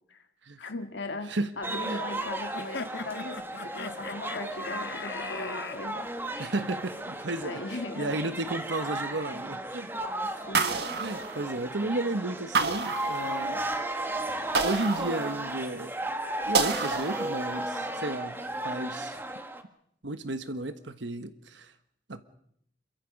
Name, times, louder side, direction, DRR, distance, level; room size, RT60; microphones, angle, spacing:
voice 1, 0.6-6.1 7.4-8.4 10.5-10.8, left 2 dB, 90° left, 6 dB, 1.9 m, -38 dB
sound 1, 1.6-19.6, right 1 dB, 10° right, 1.3 m, -35 dB
sound 2, 2.5-5.8, left 4 dB, 65° left, 1.2 m, -39 dB
voice 2, 6.4-7.6 7.9-9.9 10.2-10.3 11.0-13.6 14.6-15.9 16.5-18.4 18.6-19.2 20.0-21.7 22.1-22.2, right 2 dB, 90° right, 10 dB, 1.3 m, -33 dB
sound 3, 10.5-11.9 12.5-13.7 14.5-15.8 16.5-17.7, right 4 dB, 65° right, 1.7 m, -30 dB
27.0 x 23.5 x 5.4 m, 0.72 s
head